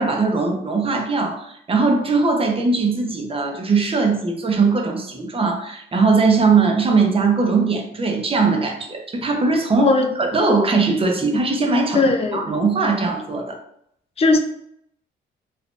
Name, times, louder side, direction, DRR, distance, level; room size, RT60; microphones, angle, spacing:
voice 1, 0.0-9.9 10.2-12.0 12.3-13.6, right 4 dB, 30° right, 2 dB, 0.7 m, -20 dB
voice 2, 9.8-10.1 11.9-12.4 14.2-14.4, left 3 dB, 30° left, 5 dB, 0.5 m, -17 dB
3.6 x 2.5 x 2.4 m, 0.73 s
cardioid pair, 90°, 20 cm